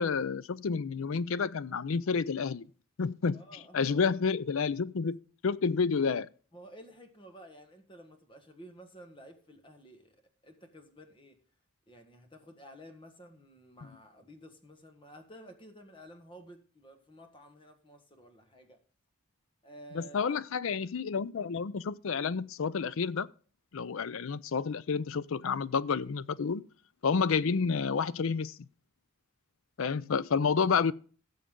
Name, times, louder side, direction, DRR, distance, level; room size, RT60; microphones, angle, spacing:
voice 1, 0.0-2.7 3.0-3.4 3.7-5.2 5.4-6.3 20.0-23.3 23.7-26.7 27.0-28.6 29.8-30.9, left 5 dB, 70° left, 0.5 m, -29 dB
voice 2, 3.3-4.0 6.5-11.4 11.9-18.8 19.6-20.4, equal, 25° left, 1.4 m, -52 dB
16.5 x 7.0 x 3.7 m
head